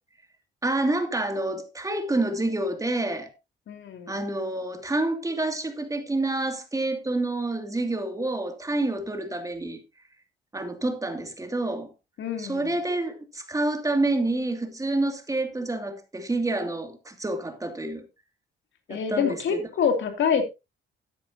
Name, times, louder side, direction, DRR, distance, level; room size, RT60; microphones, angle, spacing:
voice 1, 0.6-3.3 4.1-9.8 10.5-11.9 12.4-18.0 18.9-19.3, right 2 dB, 15° right, 2.6 m, -28 dB
voice 2, 3.7-4.1 12.2-12.8 18.9-20.4, left 7 dB, 70° left, 2.8 m, -26 dB
13.5 x 10.0 x 2.9 m
cardioid pair, 90°, 20 cm